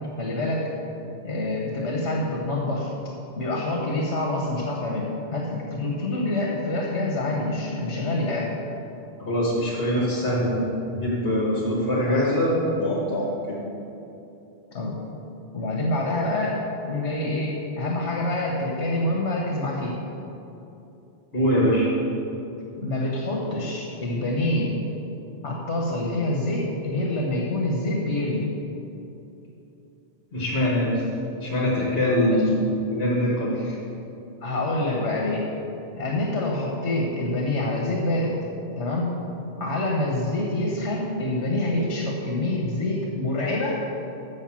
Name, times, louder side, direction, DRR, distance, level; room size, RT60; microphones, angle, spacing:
voice 1, 0.2-0.7 1.2-2.9 3.4-8.5 12.0-12.2 14.7-15.0 15.5-16.6 16.8-19.9 22.8-24.7 25.4-28.5 32.3-32.4 34.4-35.4 35.9-38.4 38.8-39.1 39.6-43.8, left 2 dB, 75° left, -1 dB, 1.3 m, -26 dB
voice 2, 9.2-10.7 10.9-13.6 21.3-21.9 30.3-31.0 31.4-33.8, equal, 60° left, -4 dB, 1.5 m, -23 dB
6.6 x 6.5 x 7.3 m, 2.9 s
omnidirectional pair, 1.2 m